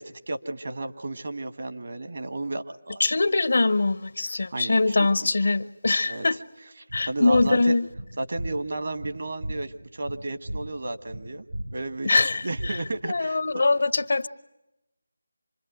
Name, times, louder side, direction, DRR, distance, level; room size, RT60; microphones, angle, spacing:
voice 1, 0.0-3.0 4.5-5.1 6.1-6.3 7.1-7.8 8.2-11.4 11.7-12.1 12.4-13.6, right 2 dB, 55° right, 1.5 m, -33 dB
voice 2, 3.0-6.4 6.9-7.9 12.0-12.8 13.0-14.3, left 3 dB, 60° left, 0.9 m, -23 dB
sound 1, 6.9-13.2, right 1 dB, 85° right, 4.8 m, -37 dB
27.0 x 21.5 x 9.2 m
figure-of-eight pair, 165°, 0 cm